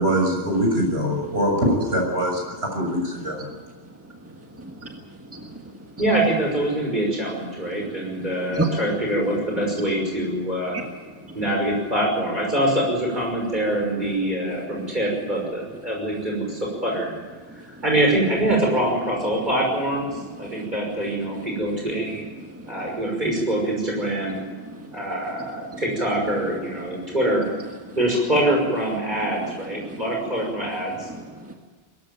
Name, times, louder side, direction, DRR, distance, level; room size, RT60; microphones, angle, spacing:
voice 1, 0.0-3.4, equal, 85° right, 1 dB, 7.0 m, -23 dB
voice 2, 4.2-5.0 5.3-5.6 8.5-8.8 10.7-10.9 11.3-11.4 20.2-20.7 22.5-23.0 24.7-25.0 25.4-25.8 29.8-30.0 31.1-31.5, right 3 dB, 15° right, 2 dB, 1.7 m, -33 dB
voice 3, 6.0-10.8 11.3-17.1 17.5-22.2 22.7-24.4 24.9-27.4 27.9-31.1, right 1 dB, 45° right, -1 dB, 6.1 m, -24 dB
22.5 x 14.5 x 9.1 m, 1.4 s
omnidirectional pair, 1.0 m